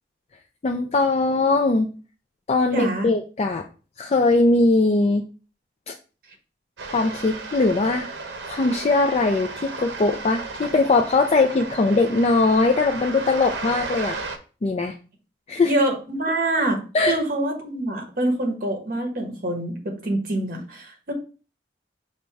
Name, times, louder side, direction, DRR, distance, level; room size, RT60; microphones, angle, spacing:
voice 1, 0.6-1.9 2.5-3.6 4.0-5.2 5.9-6.0 6.9-8.1 8.5-14.2 14.6-15.0 15.5-15.7 16.9-17.2, left 3 dB, 35° left, 3 dB, 0.4 m, -20 dB
voice 2, 2.7-3.1 15.6-16.8 17.1-21.1, right 1 dB, 55° right, 3 dB, 1.2 m, -25 dB
sound 1, 6.8-14.4, right 3 dB, 85° right, 0.7 m, -34 dB
5.3 x 2.2 x 4.5 m, 0.36 s
head